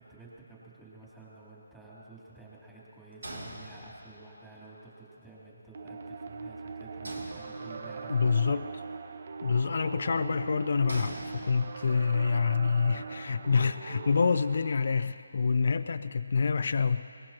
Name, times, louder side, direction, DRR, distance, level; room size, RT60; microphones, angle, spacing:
voice 1, 0.0-8.6 15.4-15.7, right 2 dB, 5° right, -8 dB, 3.3 m, -51 dB
sound 1, 3.2-4.3 7.0-8.1 10.9-12.0, right 1 dB, 85° right, 2.8 m, -43 dB
sound 2, 5.7-15.1, right 4 dB, 50° right, 0.6 m, -41 dB
voice 2, 8.1-8.7 9.4-17.1, left 5 dB, 55° left, 11 dB, 0.4 m, -27 dB
23.5 x 20.0 x 3.0 m, 2.5 s
figure-of-eight pair, 160°, 0 cm